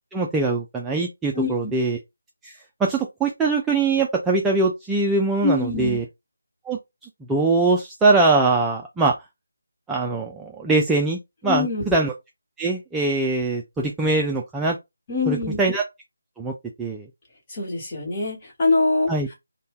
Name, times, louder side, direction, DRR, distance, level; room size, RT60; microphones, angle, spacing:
voice 1, 0.1-2.0 2.4-6.0 6.6-9.2 9.9-12.1 12.6-14.8 15.3-15.8 16.4-16.5 16.8-17.1 19.1-19.3, right 3 dB, 5° right, 0.3 m, -22 dB
voice 2, 1.3-1.7 5.4-6.0 11.4-11.8 15.1-15.6 17.5-19.1, left 3 dB, 25° left, 1.4 m, -23 dB
2.6 x 2.2 x 3.6 m
figure-of-eight pair, 155°, 0 cm